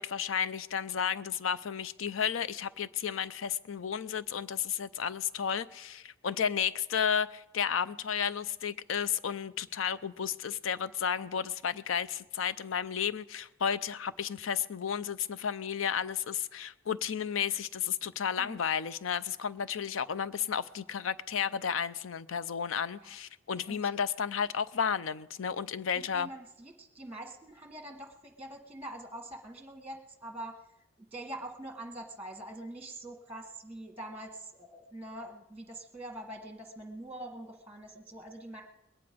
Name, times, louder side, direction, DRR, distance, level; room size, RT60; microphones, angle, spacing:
voice 1, 0.0-26.3, left 7 dB, 85° left, 15 dB, 0.5 m, -32 dB
voice 2, 25.9-30.6 31.0-38.6, right 1 dB, 10° right, 4 dB, 1.2 m, -44 dB
21.0 x 9.7 x 5.1 m, 0.94 s
head